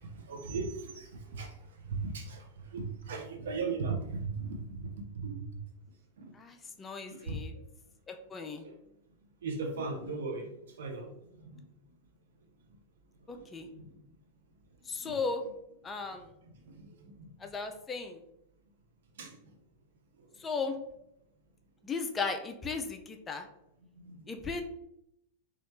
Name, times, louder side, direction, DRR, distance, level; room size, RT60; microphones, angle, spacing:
voice 1, 0.0-1.5 1.9-2.4 2.7-4.7 5.1-5.4 6.2-6.3 7.1-7.4 8.6-8.7 9.4-10.5 10.8-11.1 11.5-11.6 13.3-13.9 15.0-15.1 16.8-17.3 19.2-19.3 24.0-24.2, right 4 dB, 60° right, 3 dB, 0.6 m, -37 dB
voice 2, 6.3-7.5 8.1-8.6 13.3-13.7 14.9-15.4 15.8-16.3 17.4-18.2 20.4-20.8 21.8-23.5 24.3-24.6, left 4 dB, 20° left, 5 dB, 0.4 m, -36 dB
3.0 x 2.4 x 3.0 m, 0.80 s
figure-of-eight pair, 90°, 0 cm